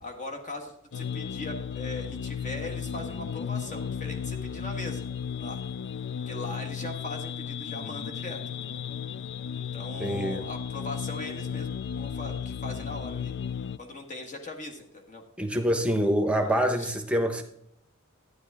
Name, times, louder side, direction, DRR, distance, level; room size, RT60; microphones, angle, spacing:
voice 1, 0.0-5.1 5.4-5.6 6.3-8.8 9.7-13.3 13.8-15.2 16.4-16.5 16.8-16.9, left 2 dB, 35° left, 3 dB, 1.5 m, -39 dB
sound 1, 0.9-13.8, left 7 dB, 55° left, 0.4 m, -34 dB
voice 2, 10.0-10.4 15.4-17.4, equal, 5° right, 5 dB, 1.0 m, -25 dB
12.5 x 9.8 x 3.5 m, 0.73 s
head